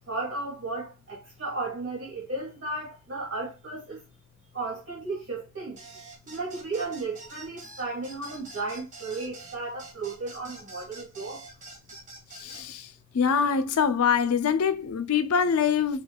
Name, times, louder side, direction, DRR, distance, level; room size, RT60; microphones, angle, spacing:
voice 1, 0.1-4.0 4.5-5.8 6.3-11.4, right 3 dB, 55° right, 1.6 m, -34 dB
sound 1, 5.8-12.7, right 2 dB, 35° right, 1.3 m, -46 dB
voice 2, 12.3-12.9 13.1-16.0, left 6 dB, 85° left, 0.5 m, -24 dB
4.6 x 2.3 x 2.2 m
head